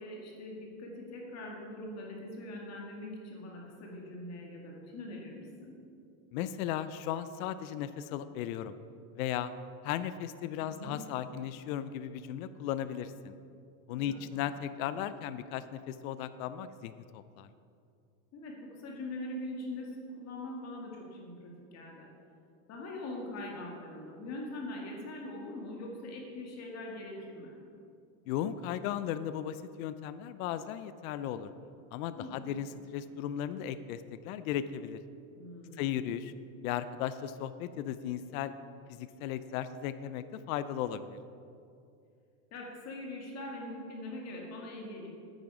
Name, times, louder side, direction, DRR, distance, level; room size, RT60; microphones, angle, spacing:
voice 1, 0.0-5.8 10.6-11.1 13.9-14.3 18.3-22.1 22.7-27.5 32.1-32.5 35.3-36.0 42.5-45.1, left 1 dB, 35° left, -1 dB, 2.0 m, -42 dB
voice 2, 6.3-8.8 9.1-9.5 9.8-13.3 13.9-17.5 28.3-31.5 31.9-35.0 35.8-36.3 36.6-38.5 38.9-41.2, left 10 dB, 75° left, 13 dB, 0.6 m, -36 dB
9.3 x 9.1 x 4.9 m, 2.5 s
supercardioid pair, 150°, 43 cm